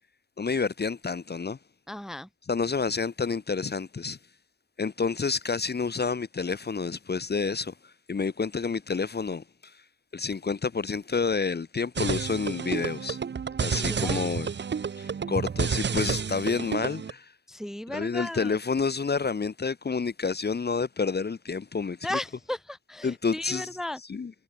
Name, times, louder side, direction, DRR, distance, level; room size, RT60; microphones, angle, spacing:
voice 1, 0.4-1.6 2.5-4.2 4.8-9.4 10.1-13.2 13.6-14.5 15.0-17.3 17.9-22.2 23.0-23.7 24.1-24.3, left 5 dB, 30° left, 0.9 m, -29 dB
voice 2, 1.9-2.3 13.6-14.5 17.5-18.6 22.0-24.0, left 1 dB, ahead, 0.8 m, -35 dB
sound 1, 12.0-17.1, right 6 dB, 35° right, 0.6 m, -30 dB
wide cardioid pair, 170°, 33 cm